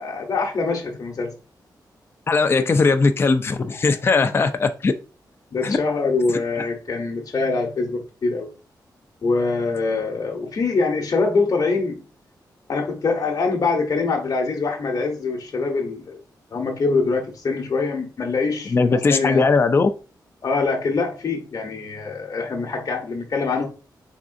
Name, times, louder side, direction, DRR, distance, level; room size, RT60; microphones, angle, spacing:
voice 1, 0.0-1.3 3.7-3.8 4.2-4.3 5.5-8.5 9.2-12.0 12.7-16.2 16.5-19.5 20.4-23.7, left 4 dB, 50° left, 0.9 m, -24 dB
voice 2, 2.3-4.9 5.6-5.8 6.3-6.4 18.7-19.9, left 4 dB, 30° left, 0.4 m, -19 dB
4.1 x 3.6 x 2.5 m
wide cardioid pair, 105°, 7 cm